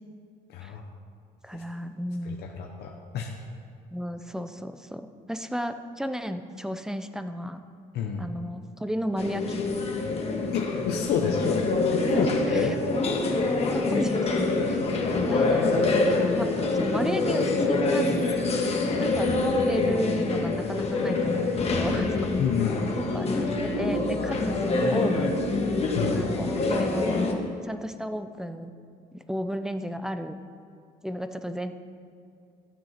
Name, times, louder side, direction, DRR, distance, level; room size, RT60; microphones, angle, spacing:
voice 1, 1.4-2.4 3.9-7.6 8.2-9.6 12.0-12.7 13.7-14.8 15.3-16.0 16.3-18.3 19.0-22.3 23.0-25.4 26.1-28.7 29.1-30.4 31.0-31.7, equal, 5° right, 9 dB, 0.6 m, -33 dB
voice 2, 2.3-3.3 7.9-8.2 10.5-11.7 11.9-12.7 15.6-15.9 22.4-22.9 26.0-26.2, left 7 dB, 75° left, 1 dB, 1.0 m, -29 dB
sound 1, 9.2-27.3, left 3 dB, 40° left, 1.6 m, -26 dB
13.5 x 7.7 x 5.9 m, 2.4 s
cardioid pair, 110°, 17 cm